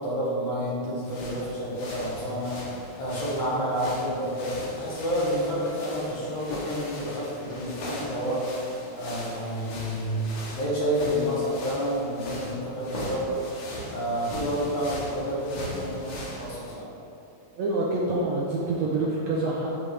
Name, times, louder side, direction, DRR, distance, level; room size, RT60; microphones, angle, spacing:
voice 1, 0.0-2.6 3.0-10.2 10.5-13.4 13.9-16.9, equal, 55° left, -7 dB, 2.5 m, -29 dB
sound 1, 1.0-16.7, left 1 dB, 75° left, 3.1 m, -39 dB
voice 2, 17.6-19.7, right 2 dB, 70° right, -4 dB, 1.8 m, -26 dB
14.5 x 5.2 x 3.4 m, 2.8 s
omnidirectional pair, 3.9 m